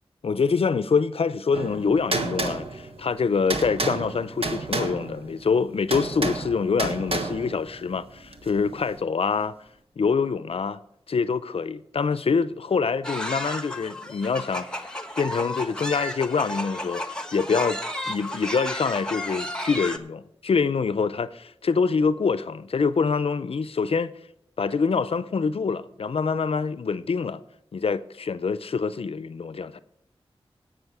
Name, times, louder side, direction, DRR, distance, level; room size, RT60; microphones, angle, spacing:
voice 1, 0.2-9.6 10.0-10.8 11.1-14.7 15.2-17.0 17.3-17.8 18.1-24.1 24.6-27.4 27.7-29.8, left 5 dB, 70° left, 0.5 m, -25 dB
sound 1, 1.5-9.0, right 2 dB, 65° right, 1.4 m, -31 dB
sound 2, 13.0-20.0, left 1 dB, 10° left, 1.1 m, -32 dB
17.5 x 6.1 x 4.8 m
wide cardioid pair, 65°, 10 cm